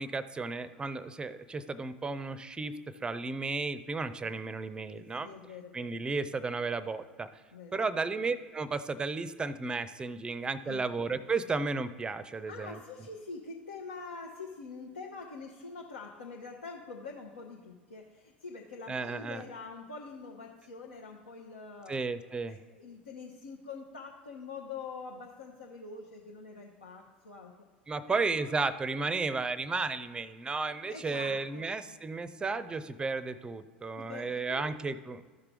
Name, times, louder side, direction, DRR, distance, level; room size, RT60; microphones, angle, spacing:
voice 1, 0.0-5.3 5.7-7.4 7.7-12.8 18.9-19.4 21.9-22.6 27.9-35.2, right 4 dB, 15° right, 15 dB, 0.5 m, -33 dB
voice 2, 4.9-6.0 7.5-7.9 10.6-10.8 12.3-22.0 22.5-27.5 28.1-28.3 30.9-31.7 34.0-34.6, left 4 dB, 80° left, -1 dB, 1.0 m, -45 dB
13.5 x 5.9 x 3.4 m, 1.3 s
figure-of-eight pair, 80°, 6 cm